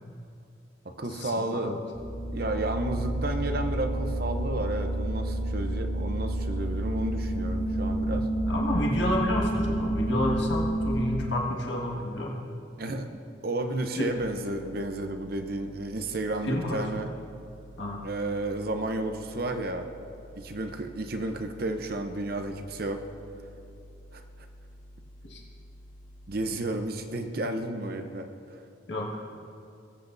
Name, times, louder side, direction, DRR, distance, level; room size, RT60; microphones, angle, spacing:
voice 1, 1.0-1.8 2.3-8.3 12.8-17.1 18.0-19.9 20.4-23.0 24.1-24.2 26.3-28.3, right 2 dB, 50° right, 6 dB, 0.7 m, -32 dB
sound 1, 1.9-11.2, right 1 dB, 10° left, 0.7 m, -29 dB
voice 2, 8.5-12.4 14.0-14.1 16.4-16.9 17.8-18.1 25.3-25.4 28.9-29.2, left 1 dB, 70° left, -2 dB, 1.8 m, -30 dB
sound 2, 14.1-26.5, equal, 40° left, 0.9 m, -50 dB
20.0 x 8.4 x 2.6 m, 2.6 s
head